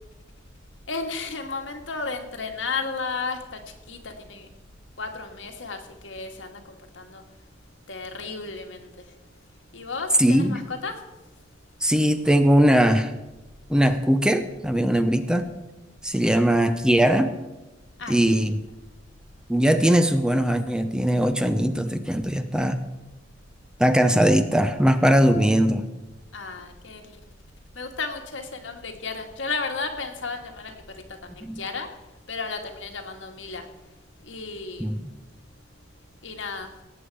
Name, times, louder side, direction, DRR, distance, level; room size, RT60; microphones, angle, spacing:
voice 1, 0.9-3.6 3.9-4.5 5.0-7.2 7.9-8.9 9.7-11.0 16.3-16.6 18.0-18.2 26.3-27.0 27.7-30.7 31.2-31.9 32.3-33.7 34.3-35.0 36.2-36.7, left 4 dB, 85° left, 4 dB, 1.7 m, -33 dB
voice 2, 10.2-10.6 11.8-13.1 13.7-15.5 16.0-17.3 18.1-18.6 19.5-22.8 23.8-25.8 31.4-31.6 34.8-35.0, equal, 5° right, 9 dB, 0.6 m, -20 dB
17.5 x 8.4 x 4.7 m, 1.1 s
head